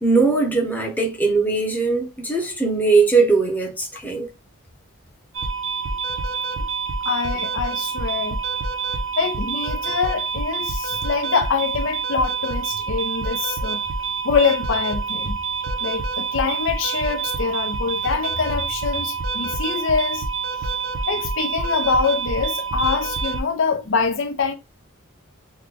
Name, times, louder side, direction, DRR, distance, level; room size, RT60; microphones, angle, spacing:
voice 1, 0.0-4.3, right 4 dB, 10° left, 0.8 m, -20 dB
sound 1, 5.3-23.4, right 4 dB, 60° right, 0.6 m, -27 dB
voice 2, 7.0-8.4 9.2-13.8 14.2-15.4 15.8-20.3 20.6-20.7 21.1-24.5, left 5 dB, 65° left, 0.6 m, -24 dB
3.2 x 2.2 x 3.6 m
head